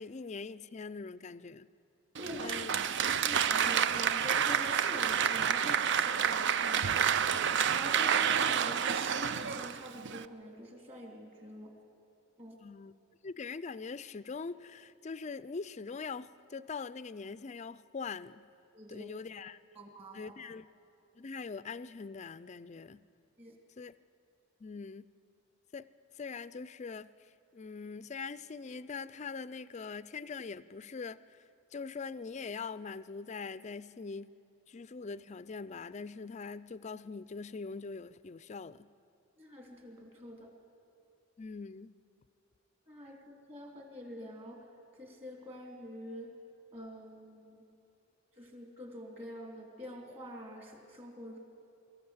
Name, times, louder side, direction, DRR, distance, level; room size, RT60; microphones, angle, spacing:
voice 1, 0.0-1.7 2.4-2.7 12.6-12.9 13.2-18.5 18.9-19.6 20.1-20.7 21.1-23.0 23.8-23.9 24.6-25.1 25.7-25.9 26.1-27.1 27.5-31.4 31.7-34.3 34.7-38.9 41.4-41.9, left 4 dB, 35° left, 0.4 m, -42 dB
Applause, 2.1-10.2, right 8 dB, 55° right, 0.5 m, -29 dB
voice 2, 2.2-2.6 3.0-11.7 12.4-12.6 18.7-19.1 19.7-20.4 23.4-23.5 39.4-40.5 42.9-44.6 45.0-46.3 46.7-47.6 48.4-51.4, equal, 30° right, 2.8 m, -46 dB
23.5 x 14.5 x 7.9 m
head